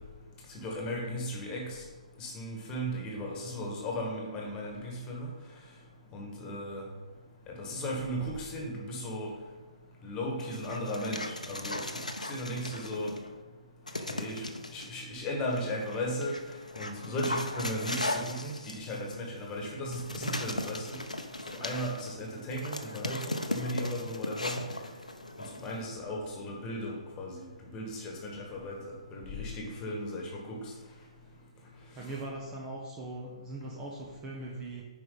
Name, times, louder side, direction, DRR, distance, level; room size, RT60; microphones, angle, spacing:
voice 1, 0.5-1.8 2.2-5.3 6.1-6.9 7.5-9.3 10.0-11.8 12.2-13.1 14.1-16.4 16.7-21.0 21.5-24.6 25.6-28.8 29.1-30.7 32.0-32.2, equal, 20° left, -1 dB, 1.8 m, -36 dB
Dog, 10.4-13.3 13.9-14.9 15.5-25.9, left 1 dB, 85° left, 0.8 m, -38 dB
voice 2, 32.0-34.8, right 2 dB, 20° right, -1 dB, 0.9 m, -40 dB
9.6 x 4.9 x 4.0 m, 1.3 s
figure-of-eight pair, 135°, 4 cm